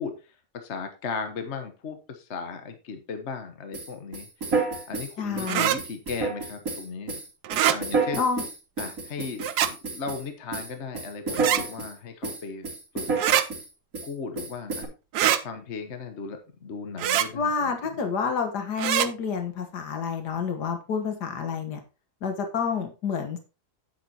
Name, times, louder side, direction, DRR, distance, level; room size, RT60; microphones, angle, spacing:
voice 1, 0.0-4.3 4.9-7.2 7.7-8.2 8.8-9.4 9.8-12.7 12.9-13.1 14.0-14.9 15.4-18.1, left 5 dB, 45° left, 7 dB, 1.4 m, -36 dB
sound 1, 3.7-10.3 10.5-11.9 12.2-13.7 13.9-14.1 14.4-14.9, right 4 dB, 60° right, 3.1 m, -30 dB
voice 2, 5.2-5.7 8.2-8.4 17.3-21.8 22.2-23.4, left 5 dB, 85° left, 6 dB, 1.9 m, -29 dB
sound 2, 5.5-5.8 7.4-7.8 9.4-9.7 11.3-11.6 13.2-13.4 15.1-15.4 17.0-17.3 18.8-19.1, right 11 dB, 85° right, 1.3 m, -23 dB
9.4 x 8.7 x 2.9 m, 0.30 s
omnidirectional pair, 1.7 m